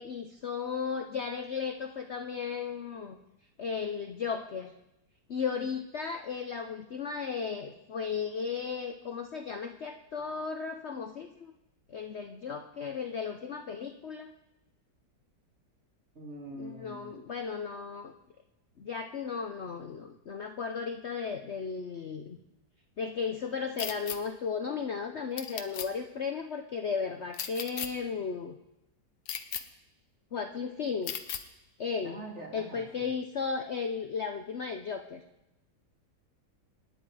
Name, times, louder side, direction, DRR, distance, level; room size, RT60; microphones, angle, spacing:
voice 1, 0.0-3.2 3.6-4.7 5.3-11.5 11.9-14.3 16.6-18.1 18.8-22.4 23.0-28.6 30.3-31.2 31.8-32.2 32.5-35.2, left 5 dB, 50° left, 5 dB, 0.9 m, -35 dB
voice 2, 16.1-17.2 32.0-33.1, right 1 dB, 40° right, 0 dB, 2.9 m, -44 dB
sound 1, 23.8-24.2 25.4-25.9 27.3-27.9 29.3-29.6 31.1-31.4, left 9 dB, 75° left, 1.6 m, -35 dB
25.5 x 10.0 x 4.9 m, 0.92 s
omnidirectional pair, 1.9 m